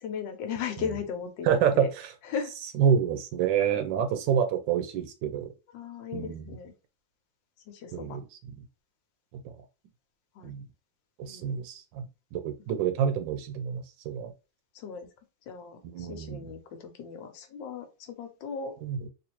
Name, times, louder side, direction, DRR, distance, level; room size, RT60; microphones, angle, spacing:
voice 1, 0.0-1.9 2.3-2.5 5.7-6.7 7.7-8.2 10.4-10.5 11.2-11.6 14.7-15.1 15.5-18.7, left 6 dB, 75° left, 6 dB, 1.4 m, -37 dB
voice 2, 1.4-2.1 2.7-5.5 6.1-6.5 7.9-8.2 9.4-9.5 10.4-10.6 11.2-12.1 12.3-14.3 15.8-16.5 18.8-19.1, right 8 dB, 75° right, 8 dB, 1.3 m, -28 dB
3.9 x 2.5 x 2.9 m, 0.31 s
omnidirectional pair, 2.1 m